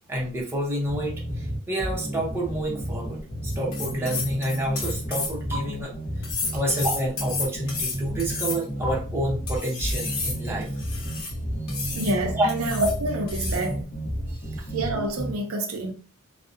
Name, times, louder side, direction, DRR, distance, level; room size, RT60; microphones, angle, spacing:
voice 1, 0.1-6.3 6.5-10.7 12.3-12.5 14.3-14.7, right 1 dB, 10° right, 0.6 m, -29 dB
sound 1, 0.9-15.3, right 1 dB, 35° left, 0.7 m, -32 dB
sound 2, 3.5-5.6 6.2-8.9 9.5-11.3 11.7-12.2 12.5-13.0 13.3-13.7, left 3 dB, 65° left, 0.8 m, -32 dB
voice 2, 11.9-13.8 14.7-15.9, right 1 dB, 70° right, 0.5 m, -27 dB
2.6 x 2.0 x 2.5 m
head